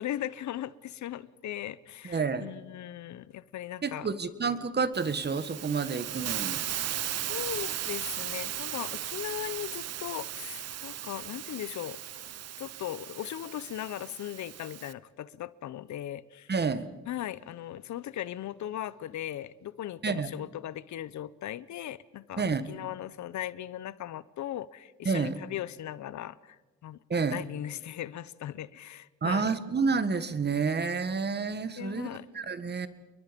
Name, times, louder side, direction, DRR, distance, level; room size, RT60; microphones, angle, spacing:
voice 1, 0.0-4.1 7.3-12.0 12.6-16.5 17.1-26.6 26.8-27.0 27.3-29.5 31.8-32.3, left 12 dB, 70° left, 0.9 m, -38 dB
voice 2, 2.0-2.5 3.8-6.6 16.5-16.9 20.0-20.3 22.4-22.7 25.1-25.4 27.1-27.4 29.2-32.1 32.3-32.9, right 5 dB, 35° right, 1.7 m, -29 dB
Hiss, 4.9-14.9, right 10 dB, 55° right, 1.0 m, -37 dB
29.5 x 22.5 x 5.3 m
cardioid pair, 90°, 30 cm